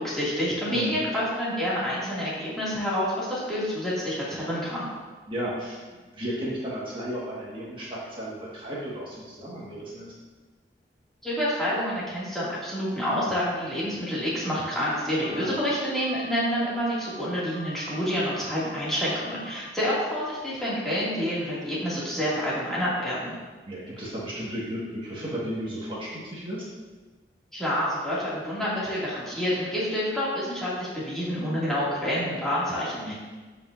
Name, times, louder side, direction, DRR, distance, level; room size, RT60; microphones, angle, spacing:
voice 1, 0.0-4.9 11.2-23.4 27.5-33.1, equal, ahead, -10 dB, 2.5 m, -28 dB
voice 2, 0.7-1.1 5.3-10.1 15.3-15.6 23.7-26.7 33.1-33.2, equal, 30° right, -7 dB, 1.8 m, -34 dB
sound 1, 14.4-14.9 15.2-15.7 16.0-16.5 16.7-17.2 17.5-18.0 18.3-18.8 19.1-19.6, equal, 85° right, 1.0 m, -45 dB
14.0 x 5.3 x 2.7 m, 1.3 s
head